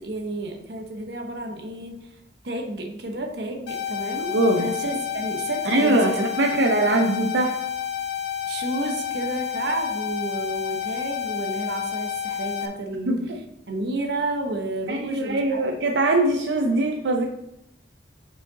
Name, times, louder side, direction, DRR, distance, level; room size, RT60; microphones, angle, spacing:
voice 1, 0.0-2.1 2.4-6.2 8.5-13.2 13.7-15.6 15.9-16.0, right 2 dB, 70° right, 3 dB, 1.0 m, -31 dB
sound 1, 3.7-12.7, left 9 dB, 90° left, 0.8 m, -30 dB
voice 2, 4.3-4.7 5.6-7.5 13.1-13.4 14.9-17.2, right 2 dB, 90° right, 1 dB, 0.7 m, -22 dB
6.5 x 5.0 x 4.0 m, 0.80 s
head